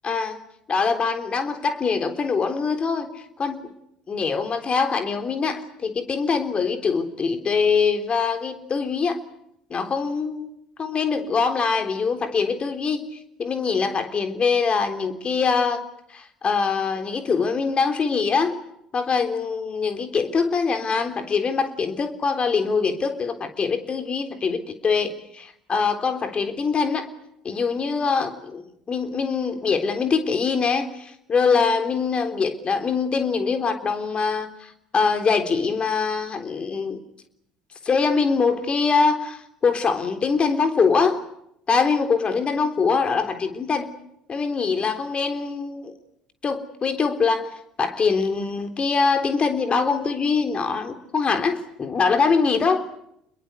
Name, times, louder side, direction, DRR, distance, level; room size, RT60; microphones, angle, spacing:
voice 1, 0.0-0.4 0.7-3.1 3.4-3.7 4.1-9.2 9.7-10.5 10.8-13.0 13.4-15.9 16.1-18.6 18.9-27.1 27.4-37.0 37.8-41.2 41.7-43.9 44.3-45.9 46.4-47.5 47.8-52.8, left 5 dB, 35° left, 8 dB, 3.6 m, -23 dB
29.0 x 22.0 x 8.2 m, 0.76 s
figure-of-eight pair, 60°, 3 cm